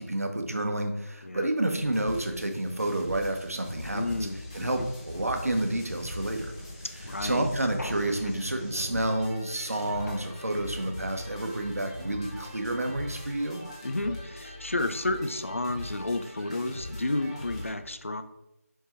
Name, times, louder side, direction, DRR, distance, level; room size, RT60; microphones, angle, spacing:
voice 1, 0.0-4.3 4.5-6.5 7.2-13.6, right 1 dB, 65° right, 5 dB, 1.1 m, -30 dB
sound 1, 1.7-17.7, left 1 dB, 15° left, 1.2 m, -41 dB
voice 2, 3.9-4.9 7.0-7.5 8.2-8.3 13.8-18.2, left 2 dB, 55° left, 10 dB, 0.6 m, -31 dB
sound 2, 7.8-8.8 10.1-10.9, left 2 dB, 90° left, 1.0 m, -44 dB
5.4 x 4.7 x 4.4 m, 0.86 s
figure-of-eight pair, 175°, 9 cm